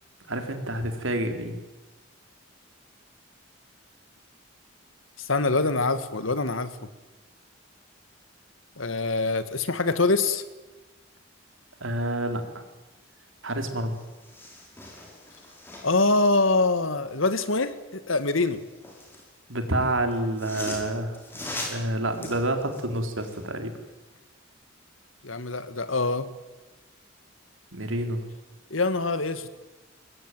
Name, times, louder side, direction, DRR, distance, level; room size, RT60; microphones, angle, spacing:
voice 1, 0.3-1.6 11.8-12.6 13.4-14.0 19.5-21.2 21.7-23.7 27.7-28.3, right 1 dB, 80° right, 6 dB, 3.8 m, -28 dB
voice 2, 5.2-6.8 8.8-10.4 15.8-18.6 25.2-26.3 28.7-29.5, left 3 dB, 85° left, 12 dB, 1.9 m, -24 dB
sound 1, 13.5-13.6 13.9-16.1 18.2-19.3 20.1-23.5 23.9-24.0, left 2 dB, 10° left, 6.0 m, -40 dB
23.5 x 21.5 x 9.2 m, 1.1 s
head